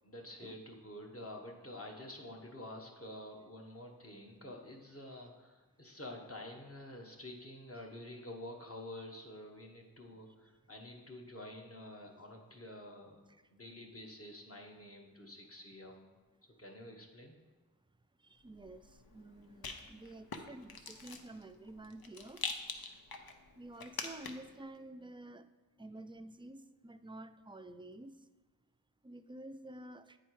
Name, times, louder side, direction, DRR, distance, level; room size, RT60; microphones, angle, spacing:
voice 1, 0.0-13.2 13.5-16.1 16.6-17.4 22.9-23.0, left 1 dB, 40° left, 1 dB, 1.2 m, -49 dB
voice 2, 18.2-22.4 23.5-25.5 25.8-28.2 29.0-30.2, right 1 dB, 15° right, 10 dB, 0.3 m, -50 dB
Rattle, 18.5-24.6, left 4 dB, 80° left, 0.7 m, -45 dB
8.9 x 4.5 x 4.6 m, 1.3 s
wide cardioid pair, 55°, 36 cm